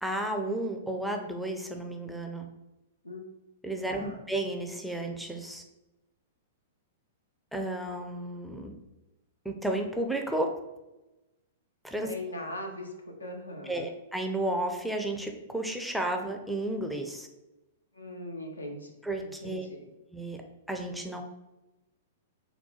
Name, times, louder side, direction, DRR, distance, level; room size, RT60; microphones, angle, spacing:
voice 1, 0.0-2.5 3.6-5.6 7.5-8.7 9.4-10.5 11.8-12.1 13.6-17.3 19.0-19.7 20.1-20.4 20.7-21.2, right 1 dB, ahead, 3 dB, 0.5 m, -32 dB
voice 2, 3.8-4.2 12.0-13.9 17.9-18.9 19.2-19.9, left 1 dB, 85° left, 3 dB, 0.7 m, -40 dB
4.0 x 2.2 x 3.8 m, 0.99 s
figure-of-eight pair, 105°, 0 cm